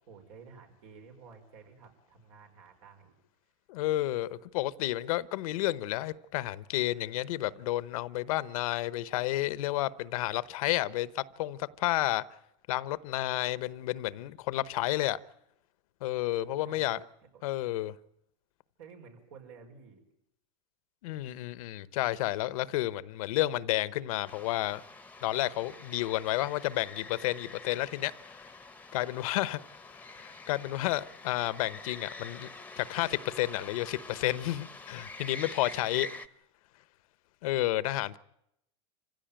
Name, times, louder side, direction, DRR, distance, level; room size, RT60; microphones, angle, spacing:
voice 1, 0.1-3.1 16.6-17.0 17.3-17.4 18.8-20.0, right 5 dB, 75° right, 5.4 m, -52 dB
voice 2, 3.7-12.2 12.7-15.2 16.0-17.0 17.4-17.9 21.0-24.8 25.2-28.1 28.9-29.6 30.1-32.5 32.8-36.1 37.4-38.2, left 16 dB, 75° left, 0.9 m, -31 dB
sound 1, 24.2-36.3, left 3 dB, 10° left, 1.0 m, -46 dB
27.5 x 16.0 x 8.9 m
supercardioid pair, 115°, 18 cm